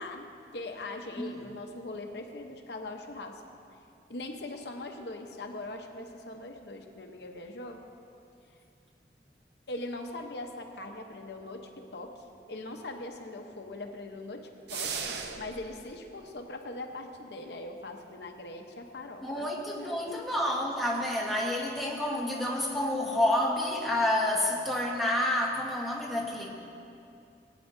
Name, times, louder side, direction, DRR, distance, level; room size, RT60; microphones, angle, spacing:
voice 1, 0.0-3.4 4.1-7.8 9.7-20.2, left 2 dB, 70° left, 3 dB, 0.9 m, -41 dB
sound 1, 14.7-15.7, right 6 dB, 70° right, 0.7 m, -36 dB
voice 2, 19.2-26.6, left 1 dB, ahead, -3 dB, 1.2 m, -29 dB
19.0 x 9.3 x 2.7 m, 2.6 s
head